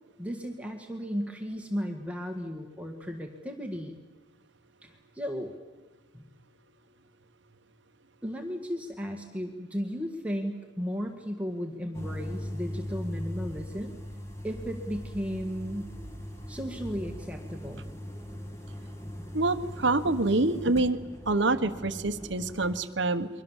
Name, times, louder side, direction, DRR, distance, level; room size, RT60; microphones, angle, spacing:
voice 1, 0.2-4.0 4.8-5.5 6.1-6.2 8.2-14.0 14.4-15.9 16.5-17.8, equal, 5° right, 2 dB, 1.8 m, -35 dB
sound 1, 11.9-22.8, equal, 15° left, 2.2 m, -39 dB
voice 2, 19.3-21.0 21.3-23.3, right 2 dB, 65° right, 10 dB, 1.4 m, -26 dB
30.0 x 23.5 x 7.4 m, 1.2 s
head